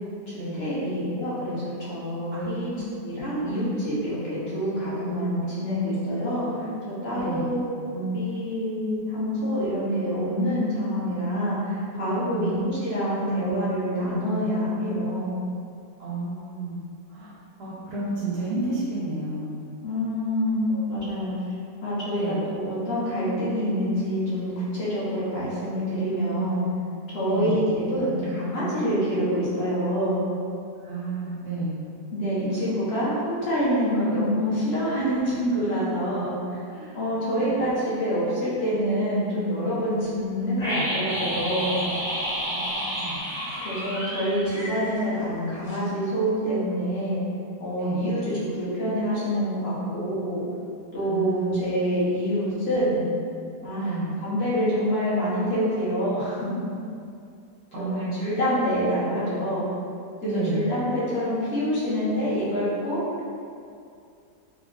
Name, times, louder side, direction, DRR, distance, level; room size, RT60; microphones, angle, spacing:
voice 1, 0.3-2.7 3.0-6.7 7.0-15.4 19.8-21.4 21.8-26.6 27.1-30.2 32.1-36.6 36.9-41.8 43.6-47.2 47.6-50.4 50.9-53.0 53.6-56.4 57.7-59.6 60.2-63.0, equal, 45° left, -10 dB, 0.9 m, -26 dB
voice 2, 2.3-2.9 7.1-7.5 12.3-12.6 16.0-16.8 17.1-17.3 17.6-19.5 20.7-21.1 22.1-22.4 27.3-27.7 30.8-31.7 36.7-37.6 42.4-43.2 47.8-48.1 51.0-51.5 53.8-54.1 57.7-58.1 60.2-60.7, right 2 dB, 90° right, -9 dB, 1.3 m, -32 dB
sound 1, 40.6-45.4 45.7-45.8, equal, 80° left, 1.9 m, -30 dB
3.6 x 2.2 x 2.3 m, 2.4 s
omnidirectional pair, 1.8 m